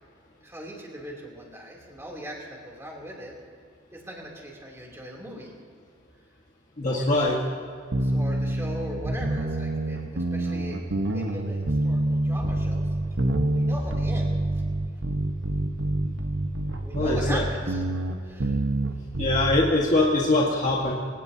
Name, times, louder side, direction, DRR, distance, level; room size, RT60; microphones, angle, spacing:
voice 1, 0.4-3.3 3.9-5.5 6.9-7.1 8.0-10.8 11.1-12.9 13.5-14.3 16.8-17.8 18.2-18.6, right 1 dB, 15° right, -2 dB, 3.0 m, -39 dB
voice 2, 6.8-7.4 16.9-17.4 19.2-20.9, left 2 dB, 40° left, -4 dB, 1.6 m, -22 dB
sound 1, 7.9-19.7, right 1 dB, 70° right, 1.2 m, -27 dB
25.0 x 18.5 x 2.8 m, 2.3 s
head